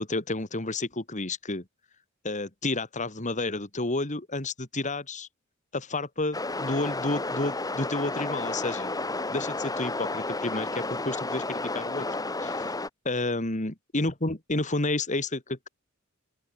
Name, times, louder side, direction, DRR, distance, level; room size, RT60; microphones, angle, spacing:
voice 1, 0.0-1.6 2.2-5.3 5.7-8.9 9.3-12.1 12.4-12.7 13.0-15.7, left 2 dB, 35° left, 2.6 m, -30 dB
sound 1, 6.3-12.9, left 2 dB, 20° left, 2.0 m, -32 dB
open air
head